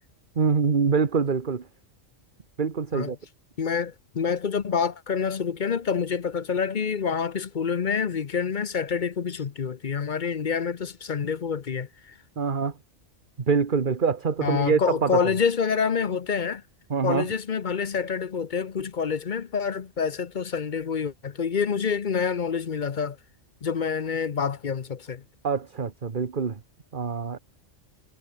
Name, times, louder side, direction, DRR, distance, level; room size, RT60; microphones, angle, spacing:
voice 1, 0.3-1.7 2.6-3.2 12.4-12.7 13.5-15.4 16.9-17.3 25.4-26.6 26.9-27.4, right 5 dB, 40° right, 1.4 m, -25 dB
voice 2, 3.6-12.1 14.4-16.6 17.0-23.2 23.6-25.2, left 6 dB, 45° left, 0.8 m, -27 dB
omnidirectional pair, 1.3 m